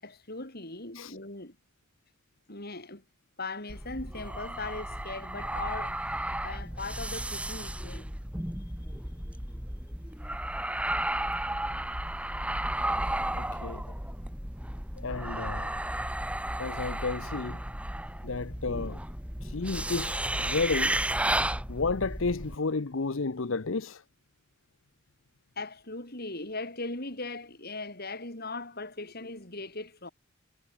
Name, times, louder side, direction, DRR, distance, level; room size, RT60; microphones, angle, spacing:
voice 1, 0.0-1.6 2.5-3.0 3.4-6.0 6.4-8.1 9.1-9.2 25.6-30.1, left 3 dB, 50° left, 6.9 m, -39 dB
sound 1, 3.7-22.5, right 1 dB, 5° right, 3.1 m, -33 dB
voice 2, 13.3-13.8 15.0-15.7 16.6-17.6 18.2-19.0 19.4-21.0 21.7-24.0, left 4 dB, 70° left, 0.9 m, -32 dB
head